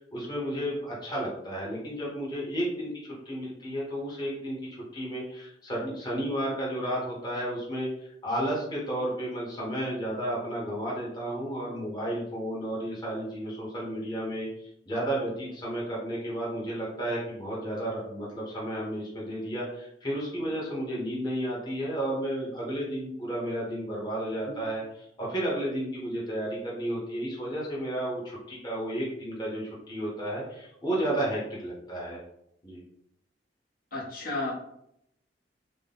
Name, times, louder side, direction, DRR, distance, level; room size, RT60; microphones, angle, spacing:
voice 1, 0.0-24.8 25.2-32.2 32.6-32.8, right 1 dB, 25° left, -6 dB, 1.1 m, -32 dB
voice 2, 33.9-34.5, left 2 dB, 50° left, -6 dB, 1.1 m, -32 dB
3.7 x 2.2 x 3.8 m, 0.75 s
head